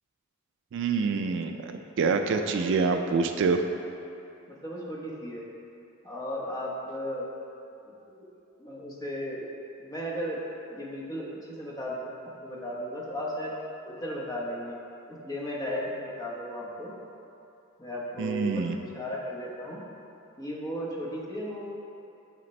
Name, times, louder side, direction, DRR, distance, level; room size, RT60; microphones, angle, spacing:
voice 1, 0.7-3.6 18.2-18.8, right 4 dB, 60° right, 6 dB, 0.3 m, -26 dB
voice 2, 2.1-3.0 4.5-5.5 6.0-7.5 8.2-8.3 8.6-9.4 9.8-10.4 10.7-13.5 13.9-14.8 15.1-16.9 17.8-19.8 20.4-21.7, equal, 20° left, -4 dB, 1.0 m, -35 dB
6.8 x 6.6 x 3.2 m, 2.8 s
head